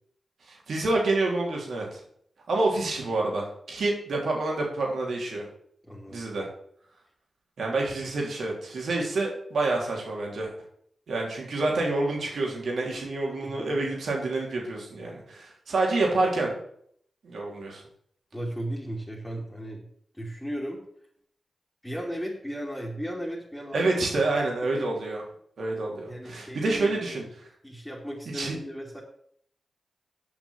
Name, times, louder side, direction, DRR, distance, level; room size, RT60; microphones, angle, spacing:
voice 1, 0.5-2.0 2.5-5.4 6.1-6.5 7.6-10.5 11.1-16.6 17.2-17.8 23.7-25.2 25.6-27.5 28.3-28.6, right 2 dB, 75° right, -1 dB, 3.6 m, -28 dB
voice 2, 5.8-6.2 13.4-13.9 18.3-19.8 20.1-20.8 21.8-23.9 24.8-24.9 26.0-27.1 27.6-29.0, equal, 5° left, -5 dB, 3.1 m, -36 dB
8.6 x 6.1 x 7.3 m, 0.66 s
cardioid pair, 50°, 0 cm